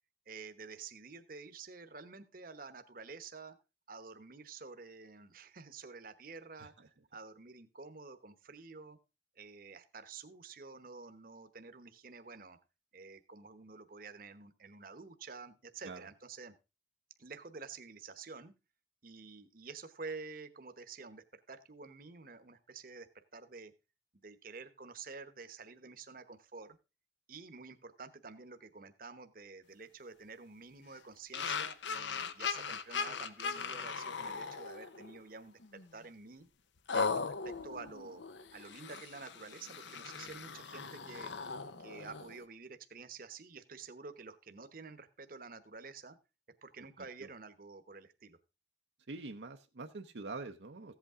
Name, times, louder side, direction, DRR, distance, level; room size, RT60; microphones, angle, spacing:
voice 1, 0.3-3.6 3.9-9.0 9.4-12.6 12.9-16.5 17.2-18.5 19.0-23.7 24.1-26.8 27.3-36.5 36.9-38.2 38.5-41.3 41.8-46.2 46.6-48.4, right 4 dB, 50° right, 10 dB, 1.0 m, -49 dB
sound 1, 31.3-35.2 35.6-35.9 36.9-42.4, left 5 dB, 80° left, 0.8 m, -39 dB
voice 2, 47.0-47.3 49.1-50.9, right 3 dB, 75° right, 5 dB, 0.7 m, -45 dB
15.0 x 8.2 x 3.6 m, 0.28 s
head